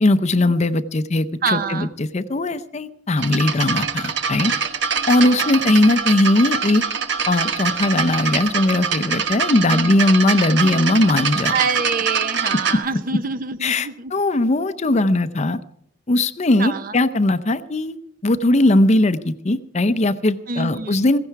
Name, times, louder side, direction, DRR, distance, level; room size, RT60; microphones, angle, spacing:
voice 1, 0.0-4.5 5.1-6.8 7.3-11.6 12.7-12.8 13.6-15.6 16.1-18.0 18.2-21.2, left 2 dB, 35° left, 13 dB, 0.6 m, -19 dB
voice 2, 1.4-1.9 5.2-5.5 9.5-10.0 11.5-14.1 16.6-16.9 20.5-21.1, right 5 dB, 45° right, 12 dB, 0.8 m, -26 dB
sound 1, 3.2-12.8, right 6 dB, 65° right, 1.2 m, -24 dB
16.0 x 15.5 x 4.6 m, 0.69 s
head